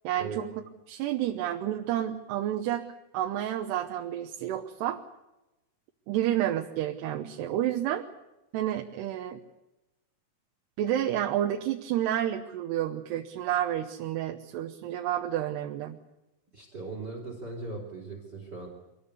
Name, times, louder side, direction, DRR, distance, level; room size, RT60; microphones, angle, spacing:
voice 1, 0.0-2.9 3.1-5.0 6.1-8.1 8.5-9.4 10.8-16.0, right 12 dB, 85° right, 4 dB, 3.2 m, -30 dB
voice 2, 16.5-18.7, right 3 dB, 25° right, 2 dB, 4.0 m, -39 dB
25.0 x 19.5 x 8.3 m, 0.98 s
omnidirectional pair, 4.7 m